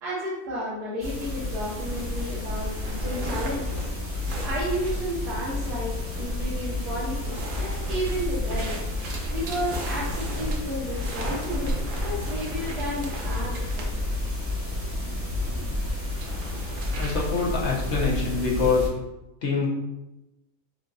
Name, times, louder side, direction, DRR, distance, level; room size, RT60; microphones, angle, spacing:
voice 1, 0.0-3.8 4.4-8.8 9.3-13.9 15.5-15.7, equal, 80° right, -9 dB, 1.6 m, -32 dB
sound 1, 1.0-18.9, left 2 dB, 10° right, 0.7 m, -31 dB
sound 2, 1.7-5.6 6.1-6.5 6.8-14.0 16.1-17.8, right 1 dB, 65° right, 0.5 m, -37 dB
voice 2, 17.0-18.9 19.4-19.7, left 4 dB, 55° left, -3 dB, 1.0 m, -25 dB
6.2 x 2.7 x 2.3 m, 0.96 s
omnidirectional pair, 1.7 m